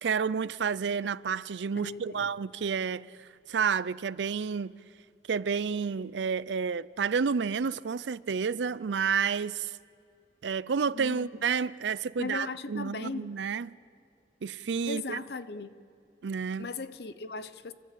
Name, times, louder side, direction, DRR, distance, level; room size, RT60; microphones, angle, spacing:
voice 1, 0.0-4.8 5.3-9.7 10.4-13.7 14.4-15.2 16.2-16.7, right 6 dB, 90° right, 0.5 m, -30 dB
voice 2, 1.7-2.3 10.9-11.3 12.2-13.3 14.9-15.7 16.6-17.7, left 3 dB, 70° left, 0.8 m, -38 dB
28.0 x 12.5 x 8.4 m
head